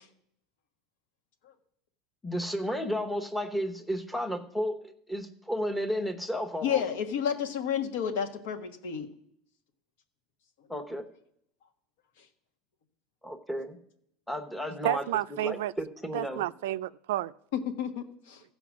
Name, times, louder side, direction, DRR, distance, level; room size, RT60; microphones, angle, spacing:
voice 1, 2.2-4.8 5.1-6.8 10.7-11.1 13.2-13.8 14.3-15.1 15.4-16.4, equal, 5° left, 0.9 m, -32 dB
voice 2, 6.6-9.1 17.5-18.4, left 8 dB, 80° left, 1.3 m, -31 dB
voice 3, 14.8-15.7 16.1-17.3, right 15 dB, 85° right, 0.3 m, -30 dB
15.0 x 5.1 x 6.1 m
supercardioid pair, 140°, 0 cm